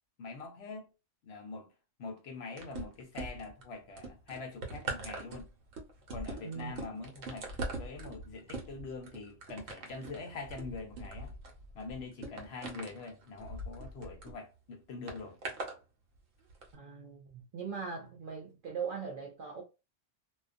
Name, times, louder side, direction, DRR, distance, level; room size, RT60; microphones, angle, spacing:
voice 1, 0.2-0.9 1.2-1.7 2.0-5.5 6.1-11.3 11.7-15.4, left 4 dB, 65° left, 0.8 m, -44 dB
sound 1, 2.6-3.6 4.0-14.3 15.1-15.8 16.5-16.6, right 2 dB, 80° right, 1.1 m, -42 dB
voice 2, 6.4-6.8 16.7-19.6, right 6 dB, 60° right, 0.5 m, -40 dB
2.3 x 2.2 x 2.4 m
omnidirectional pair, 1.3 m